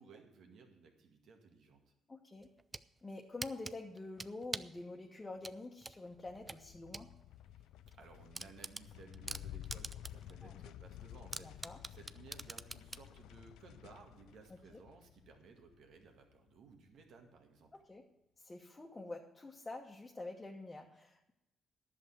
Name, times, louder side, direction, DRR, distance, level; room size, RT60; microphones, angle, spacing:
voice 1, 0.0-1.8 7.5-7.7 8.0-17.7, right 5 dB, 70° right, 4 dB, 1.9 m, -59 dB
voice 2, 2.1-2.5 3.0-7.1 10.4-10.7 11.4-11.8 14.7-14.8 17.7-18.0 18.4-21.3, left 2 dB, 20° left, -1 dB, 1.2 m, -47 dB
sound 1, 2.4-2.9 3.4-4.8 5.4-7.1 7.5-7.6 7.9-8.0 8.3-10.3 10.7-10.8 11.3-13.1, right 3 dB, 20° right, 0.4 m, -44 dB
sound 2, 6.1-16.7, left 12 dB, 85° left, 0.4 m, -53 dB
10.5 x 6.6 x 7.9 m, 0.91 s
cardioid pair, 90°, 0 cm